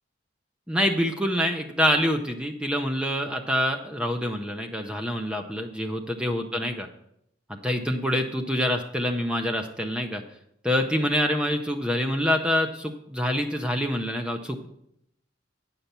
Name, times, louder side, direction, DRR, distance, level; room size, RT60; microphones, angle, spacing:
voice 1, 0.7-6.9 7.5-10.2 10.6-14.7, equal, 5° right, 5 dB, 0.6 m, -26 dB
9.2 x 5.7 x 6.7 m, 0.76 s
head